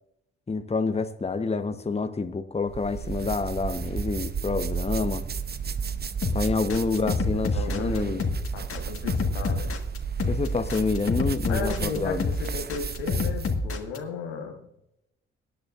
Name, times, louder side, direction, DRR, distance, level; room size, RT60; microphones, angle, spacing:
voice 1, 0.5-5.2 6.3-8.2 10.3-12.3, left 4 dB, 20° left, 9 dB, 1.0 m, -28 dB
sound 1, 2.7-13.6, right 6 dB, 30° right, 0.8 m, -33 dB
sound 2, 6.2-14.0, left 3 dB, 45° left, 1.7 m, -28 dB
voice 2, 7.0-9.7 11.5-14.7, left 5 dB, 85° left, 3 dB, 1.5 m, -35 dB
23.5 x 10.5 x 2.5 m, 0.83 s
figure-of-eight pair, 40°, 32 cm